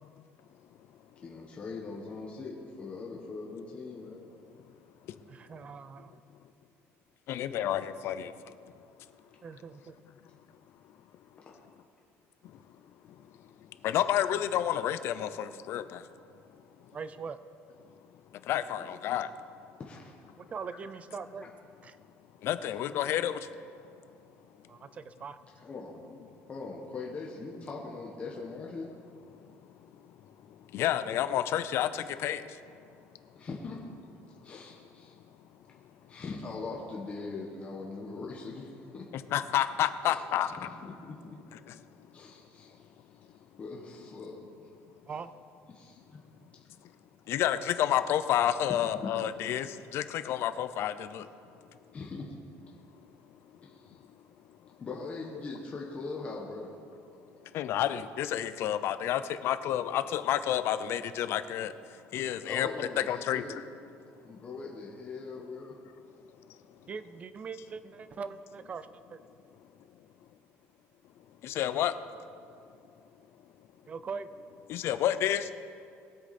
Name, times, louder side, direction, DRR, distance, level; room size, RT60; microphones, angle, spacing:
voice 1, 1.2-4.3 19.8-20.1 25.6-26.0 26.5-28.9 33.4-33.9 34.4-35.2 36.1-39.1 40.0-40.2 40.6-41.4 42.1-42.8 43.6-44.4 45.7-46.2 49.0-49.1 51.9-52.4 53.6-54.0 54.8-56.7 62.4-63.5 64.2-65.8, left 3 dB, 25° left, -2 dB, 1.2 m, -41 dB
voice 2, 5.3-6.2 9.4-10.0 16.9-17.4 20.4-21.5 21.8-22.0 24.7-25.4 45.1-45.3 66.9-69.2 73.9-74.3, right 5 dB, 25° right, 13 dB, 0.5 m, -41 dB
voice 3, 7.3-8.7 12.4-12.6 13.2-13.3 13.8-16.1 18.3-19.3 22.4-23.5 29.6-29.7 30.4-32.6 39.1-40.7 41.5-41.8 47.3-51.3 57.4-63.6 71.4-71.9 74.7-75.5, left 11 dB, 50° left, 12 dB, 0.6 m, -30 dB
21.0 x 8.2 x 4.3 m, 2.5 s
cardioid pair, 165°, 5 cm